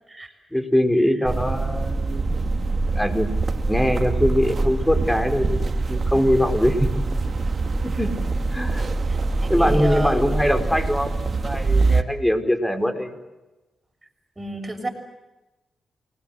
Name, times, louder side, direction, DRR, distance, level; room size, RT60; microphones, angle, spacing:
voice 1, 0.5-3.3 3.7-6.9 7.8-8.1 8.5-8.8 9.5-13.1, equal, 10° left, 6 dB, 5.3 m, -22 dB
sound 1, 1.2-12.0, right 3 dB, 50° right, 2.3 m, -24 dB
voice 2, 9.1-10.3 11.8-12.0 14.4-14.9, right 1 dB, 25° right, 5 dB, 6.7 m, -32 dB
29.0 x 21.0 x 8.1 m, 1.0 s
supercardioid pair, 45°, 0 cm